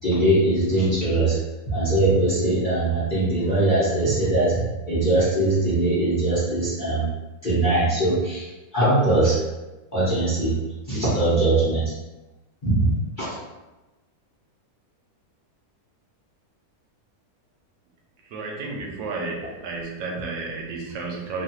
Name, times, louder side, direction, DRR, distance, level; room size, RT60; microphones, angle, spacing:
voice 1, 0.0-1.3 1.7-4.6 4.9-7.1 7.4-8.5 8.7-9.4 9.9-10.5 10.9-11.9 12.6-13.3, right 2 dB, 35° left, -11 dB, 1.0 m, -21 dB
voice 2, 18.3-19.4 19.6-21.4, right 3 dB, 85° right, 0 dB, 1.3 m, -31 dB
3.2 x 2.4 x 2.8 m, 1.1 s
omnidirectional pair, 2.0 m